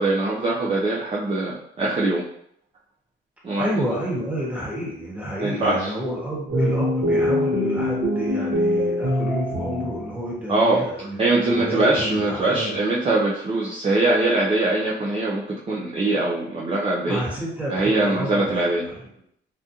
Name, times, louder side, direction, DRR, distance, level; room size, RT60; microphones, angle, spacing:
voice 1, 0.0-2.2 3.4-3.7 5.4-5.9 10.5-10.9 11.2-17.2 17.7-18.9, right 2 dB, 30° right, -5 dB, 0.5 m, -22 dB
voice 2, 3.5-12.8 17.0-19.1, equal, 5° right, -5 dB, 1.2 m, -30 dB
sound 1, 6.5-10.2, left 1 dB, 45° right, 1.1 m, -23 dB
2.4 x 2.2 x 2.8 m, 0.71 s
cardioid pair, 90°, 20 cm